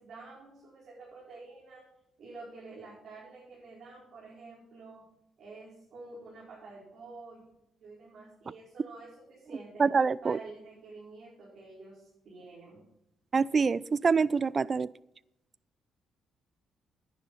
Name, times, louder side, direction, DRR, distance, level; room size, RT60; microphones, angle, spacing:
voice 1, 0.0-1.8 2.2-5.0 5.4-7.4 7.8-9.8 10.2-12.8, right 3 dB, 60° right, 5.2 m, -49 dB
voice 2, 9.8-10.4 13.3-14.9, right 5 dB, 35° right, 0.4 m, -25 dB
10.0 x 10.0 x 5.6 m
cardioid pair, 90°, 0 cm